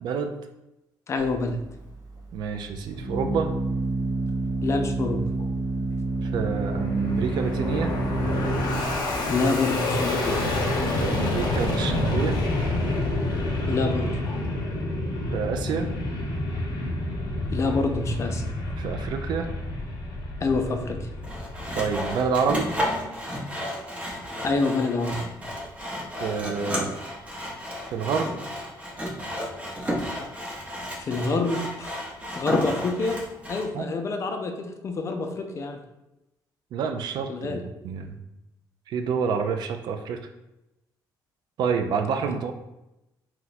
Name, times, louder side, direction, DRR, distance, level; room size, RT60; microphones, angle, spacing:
voice 1, 0.0-0.3 2.3-3.5 6.2-7.9 10.8-12.4 15.3-15.9 18.8-19.5 21.8-22.7 26.2-26.9 27.9-28.3 33.7-34.0 36.7-38.2 38.9-40.2 41.6-42.5, right 6 dB, 70° right, 6 dB, 0.4 m, -28 dB
voice 2, 1.1-1.6 4.6-5.2 9.1-10.7 13.7-14.4 17.5-18.5 20.4-21.1 24.4-25.2 31.0-32.0 32.4-33.2 33.5-35.8 37.3-37.6, left 3 dB, 40° left, 5 dB, 0.4 m, -27 dB
Organ, 1.2-11.7, right 2 dB, 50° right, 0.8 m, -30 dB
Fixed-wing aircraft airplane, 6.3-22.9, left 2 dB, 65° left, 0.8 m, -28 dB
Sawing, 21.2-33.7, equal, 15° right, 0.7 m, -32 dB
2.9 x 2.2 x 4.0 m, 0.93 s
cardioid pair, 110°, 8 cm